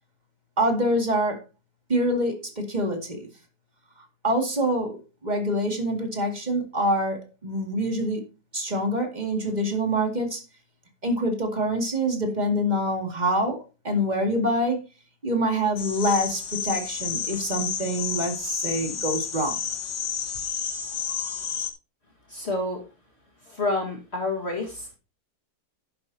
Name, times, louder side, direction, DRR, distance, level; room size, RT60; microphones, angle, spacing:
voice 1, 0.6-1.4 1.9-3.3 4.2-8.2 8.5-10.4 11.0-14.8 15.2-19.6, equal, 25° right, 2.4 m, -25 dB
sound 1, 15.8-21.7, left 7 dB, 70° left, 1.9 m, -31 dB
voice 2, 22.3-22.8 23.5-24.9, left 2 dB, 40° left, 2.0 m, -28 dB
11.0 x 10.5 x 2.8 m
omnidirectional pair, 1.7 m